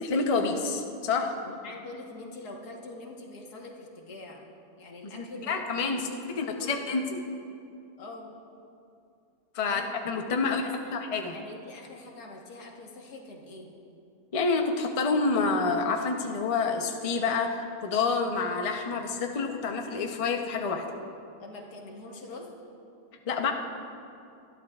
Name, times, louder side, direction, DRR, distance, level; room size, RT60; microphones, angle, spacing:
voice 1, 0.0-1.3 5.0-6.0 6.4-7.2 9.5-10.6 10.9-11.3 14.3-20.8 23.3-23.5, left 4 dB, 35° left, 3 dB, 0.6 m, -28 dB
voice 2, 1.4-4.4 4.8-7.1 8.0-8.3 9.6-11.0 11.3-13.7 21.4-22.5, left 2 dB, 85° left, 0 dB, 1.9 m, -44 dB
20.0 x 13.0 x 2.4 m, 2.6 s
omnidirectional pair, 1.6 m